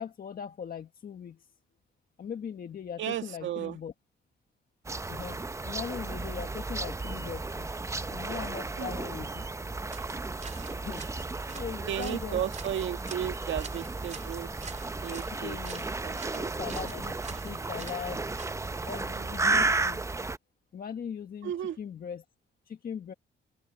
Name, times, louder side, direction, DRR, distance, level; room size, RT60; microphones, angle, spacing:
voice 1, 0.0-1.4 2.2-3.9 5.1-7.7 8.1-9.5 10.7-11.0 11.5-12.4 15.1-15.8 16.6-18.3 18.8-20.0 20.7-22.2 22.7-23.1, left 7 dB, 50° left, 1.5 m, -40 dB
voice 2, 3.0-3.8 8.8-9.2 11.9-14.5 15.0-15.6 16.0-16.5 19.1-19.3 21.4-21.8, right 10 dB, 70° right, 2.0 m, -34 dB
sound 1, 4.8-20.4, right 3 dB, 15° right, 0.7 m, -34 dB
sound 2, 9.9-18.9, right 5 dB, 35° right, 4.8 m, -48 dB
open air
cardioid pair, 90°, 20 cm